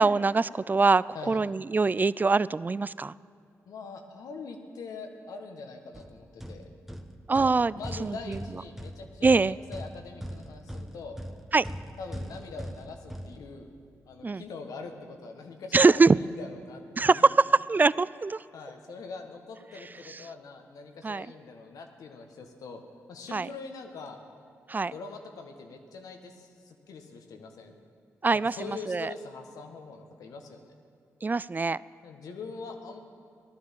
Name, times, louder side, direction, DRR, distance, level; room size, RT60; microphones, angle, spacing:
voice 1, 0.0-3.1 7.3-7.7 8.0-8.4 9.2-9.5 11.5-11.7 14.2-14.4 15.7-16.2 17.0-17.3 17.7-18.4 20.1-20.2 21.0-21.3 23.3-23.5 24.7-24.9 28.2-29.1 31.2-31.8, right 4 dB, 30° right, 20 dB, 0.4 m, -23 dB
voice 2, 3.6-6.7 7.4-11.2 12.0-13.7 14.1-17.3 18.5-22.8 23.1-24.2 24.9-27.7 28.3-30.7 32.0-33.0, left 4 dB, 80° left, 4 dB, 1.4 m, -43 dB
sound 1, 5.9-13.9, equal, 5° right, 1.1 m, -41 dB
16.0 x 11.5 x 7.4 m, 2.3 s
supercardioid pair, 45°, 6 cm